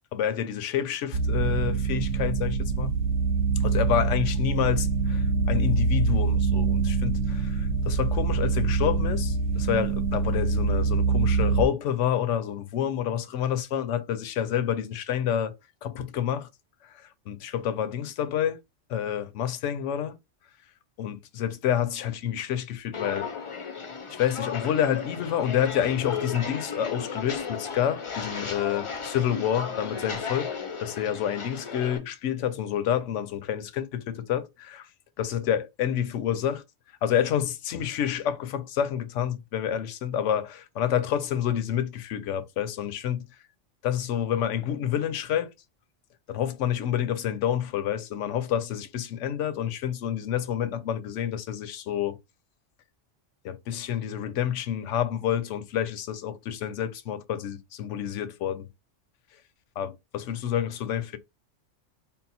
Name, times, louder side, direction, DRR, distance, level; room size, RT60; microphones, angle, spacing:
voice 1, 0.1-2.9 3.6-15.6 15.8-16.5 16.8-18.6 18.9-20.2 21.0-23.3 24.2-30.5 30.8-34.9 35.2-36.6 37.0-43.3 43.8-45.5 46.3-52.2 53.4-58.7 59.8-61.2, left 10 dB, 75° left, 0.9 m, -28 dB
sound 1, 1.1-11.6, right 4 dB, 70° right, 0.9 m, -25 dB
Walk footsteps, 22.9-32.0, left 5 dB, 35° left, 0.5 m, -35 dB
3.8 x 2.1 x 4.1 m
omnidirectional pair, 1.3 m